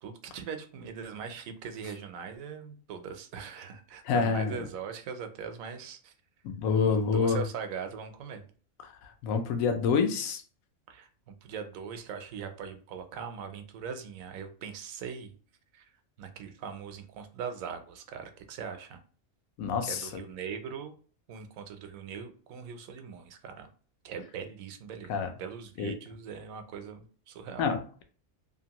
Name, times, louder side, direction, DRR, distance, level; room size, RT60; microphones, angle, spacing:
voice 1, 0.0-6.1 6.8-8.4 10.9-15.3 15.7-15.8 16.2-19.0 19.9-21.0 21.3-23.7 24.0-27.7, right 6 dB, 85° right, 7 dB, 1.0 m, -41 dB
voice 2, 4.0-4.6 6.4-7.4 8.8-10.4 19.6-20.1 25.1-25.3 25.8-25.9 27.6-28.0, left 5 dB, 85° left, 7 dB, 1.0 m, -27 dB
2.8 x 2.5 x 2.9 m, 0.42 s
omnidirectional pair, 1.4 m